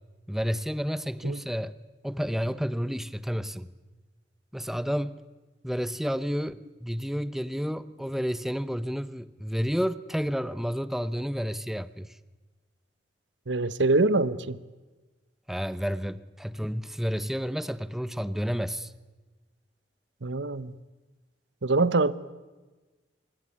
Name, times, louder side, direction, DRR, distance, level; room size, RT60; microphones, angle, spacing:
voice 1, 0.3-1.8 2.0-3.7 4.5-5.2 5.6-12.2 15.5-18.9, equal, ahead, 15 dB, 0.7 m, -30 dB
voice 2, 13.5-14.6 20.2-20.7 21.6-22.1, right 3 dB, 80° right, 17 dB, 1.0 m, -24 dB
25.0 x 21.5 x 9.4 m, 1.2 s
head